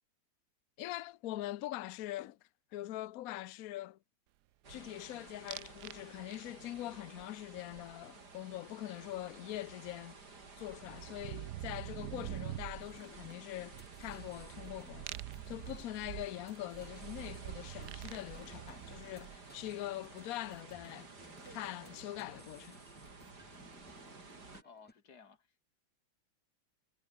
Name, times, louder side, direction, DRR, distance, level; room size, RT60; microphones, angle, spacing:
voice 1, 0.8-2.4 2.7-4.0 4.7-10.2 10.6-15.1 15.5-21.1 21.4-22.8, left 15 dB, 85° left, 0.7 m, -43 dB
sound 1, 4.6-24.6, right 3 dB, 50° right, 4.4 m, -54 dB
sound 2, 5.5-6.0 6.3-6.8 9.2-9.3 9.5-19.6, right 14 dB, 70° right, 1.0 m, -46 dB
sound 3, 12.8-24.9, equal, 5° left, 2.7 m, -61 dB
voice 2, 24.6-25.6, left 6 dB, 50° left, 2.6 m, -58 dB
omnidirectional pair, 2.3 m